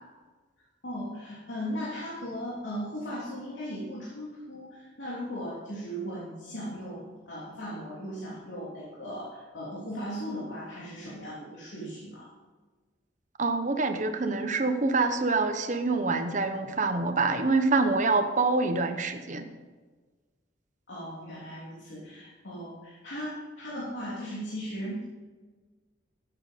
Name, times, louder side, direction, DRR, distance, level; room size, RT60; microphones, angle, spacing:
voice 1, 0.8-12.3 20.9-25.0, equal, 75° left, -8 dB, 3.3 m, -37 dB
voice 2, 13.4-19.5, right 3 dB, 40° right, 7 dB, 1.0 m, -26 dB
13.5 x 9.0 x 5.2 m, 1.4 s
head